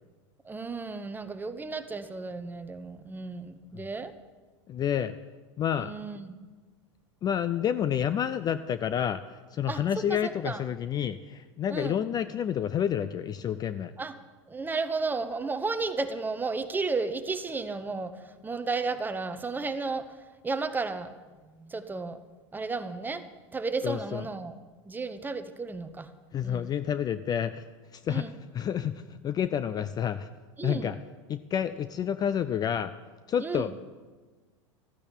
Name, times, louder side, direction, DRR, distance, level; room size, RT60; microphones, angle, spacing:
voice 1, 0.4-4.1 5.8-6.4 9.7-9.8 10.2-10.6 11.7-12.0 14.0-14.1 14.5-18.1 18.4-20.1 20.4-21.1 21.6-22.2 22.5-23.3 23.5-24.6 24.9-26.1 26.4-26.7 28.1-28.3 30.6-30.9 33.4-33.7, right 4 dB, 10° right, 11 dB, 0.9 m, -33 dB
voice 2, 4.7-5.2 5.6-5.9 7.2-13.9 23.8-24.3 26.3-27.6 27.9-30.3 30.6-31.0 31.3-32.9 33.3-33.7, left 9 dB, 25° left, 13 dB, 0.5 m, -29 dB
14.0 x 9.7 x 7.2 m, 1.3 s
hypercardioid pair, 115°, 16 cm